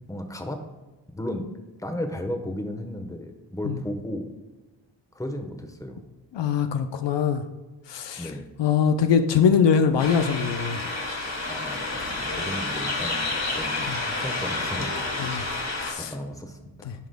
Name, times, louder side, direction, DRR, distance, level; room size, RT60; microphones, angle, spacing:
voice 1, 0.1-0.6 1.1-1.5 1.8-4.3 5.1-6.0 8.2-8.5 11.5-13.3 13.5-14.9 15.9-16.9, left 1 dB, 5° left, 4 dB, 1.1 m, -34 dB
voice 2, 6.3-7.4 7.9-8.3 8.6-10.8 13.9-14.0 15.2-15.4 15.8-16.1, left 7 dB, 70° left, 7 dB, 0.6 m, -22 dB
sound 1, 10.0-15.9, left 2 dB, 35° left, 2.1 m, -29 dB
11.5 x 5.0 x 2.2 m, 1.2 s
cardioid pair, 60°, 44 cm